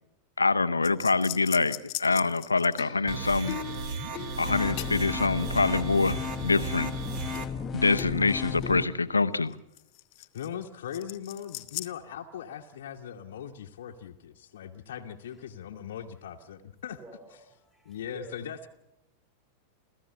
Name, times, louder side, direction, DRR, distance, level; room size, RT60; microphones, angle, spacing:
voice 1, 0.4-3.6 4.4-6.9 7.7-9.6, left 3 dB, 80° left, 14 dB, 0.8 m, -25 dB
sound 1, 0.8-5.3 5.8-6.6 7.3-7.7 8.0-10.6 10.9-11.9, left 17 dB, 45° left, 0.9 m, -40 dB
sound 2, 3.1-7.5, right 5 dB, 45° right, 2.0 m, -36 dB
sound 3, 4.5-8.8, left 6 dB, 25° left, 1.1 m, -35 dB
voice 2, 10.3-17.0 17.8-18.7, left 9 dB, 60° left, 2 dB, 1.1 m, -40 dB
voice 3, 17.0-18.4, right 2 dB, 15° right, 2 dB, 3.2 m, -50 dB
29.0 x 14.0 x 7.8 m, 0.92 s
figure-of-eight pair, 90°, 0 cm